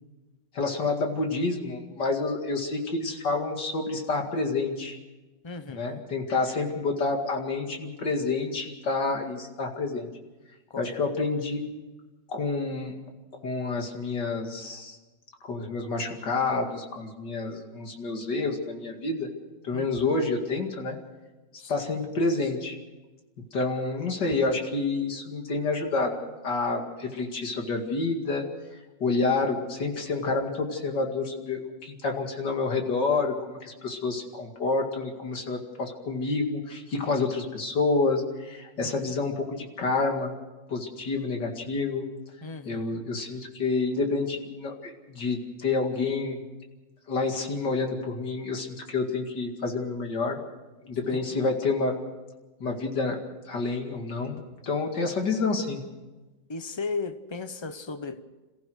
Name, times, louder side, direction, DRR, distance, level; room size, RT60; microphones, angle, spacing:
voice 1, 0.5-5.0 5.7-10.1 10.8-11.6 12.3-12.9 13.4-15.0 15.4-19.3 19.6-21.0 21.7-22.8 23.5-26.2 26.4-28.5 29.0-40.3 40.7-42.1 42.6-46.4 47.1-50.4 50.8-52.0 52.6-53.2 53.4-55.8, left 3 dB, 65° left, 2.9 m, -28 dB
voice 2, 5.4-6.0 10.7-11.0 19.7-19.9 21.6-21.9 38.8-39.1 42.4-43.0 51.1-51.4 56.5-58.2, left 4 dB, 40° left, 0.4 m, -36 dB
27.5 x 15.0 x 6.4 m
omnidirectional pair, 2.0 m